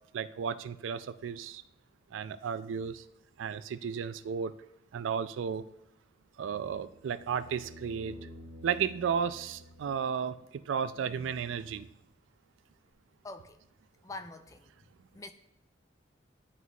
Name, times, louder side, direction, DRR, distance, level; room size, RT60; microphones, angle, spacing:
voice 1, 0.1-1.6 2.1-2.9 3.4-4.5 4.9-5.6 6.4-8.2 8.6-10.3 10.7-11.9, right 7 dB, 75° right, 13 dB, 0.3 m, -33 dB
sound 1, 6.5-10.5 12.9-13.0, left 1 dB, 35° right, 1.4 m, -51 dB
voice 2, 13.2-13.6 14.0-14.9 15.1-15.3, left 2 dB, 15° left, 8 dB, 0.4 m, -45 dB
10.5 x 3.9 x 2.4 m, 0.84 s
head